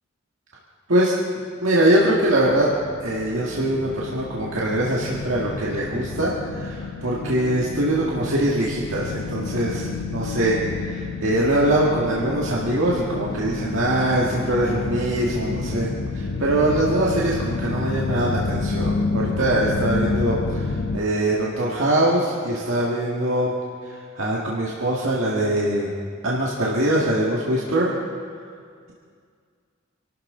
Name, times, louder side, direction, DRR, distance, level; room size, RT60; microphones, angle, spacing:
voice 1, 1.6-2.7 3.0-15.9 16.1-23.5 24.2-25.9 26.2-27.9, right 1 dB, 80° right, -5 dB, 1.8 m, -22 dB
sound 1, 2.0-21.0, left 3 dB, 85° left, 0.8 m, -29 dB
26.5 x 13.0 x 3.9 m, 2.2 s
head